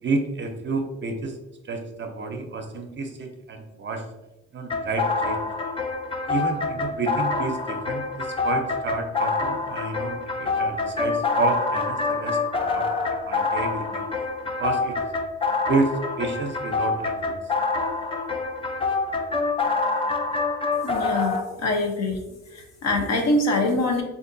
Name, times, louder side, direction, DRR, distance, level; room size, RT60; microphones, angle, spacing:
voice 1, 0.0-1.4 1.6-4.0 4.5-5.5 6.3-12.4 12.7-14.1 14.6-15.0 15.7-17.3, right 3 dB, 40° right, 3 dB, 0.5 m, -30 dB
sound 1, 4.7-21.4, left 3 dB, 20° left, 0.4 m, -26 dB
voice 2, 20.8-22.2 22.5-24.0, left 2 dB, 60° left, 2 dB, 0.7 m, -24 dB
3.5 x 2.6 x 2.6 m, 1.0 s
cardioid pair, 90°, 30 cm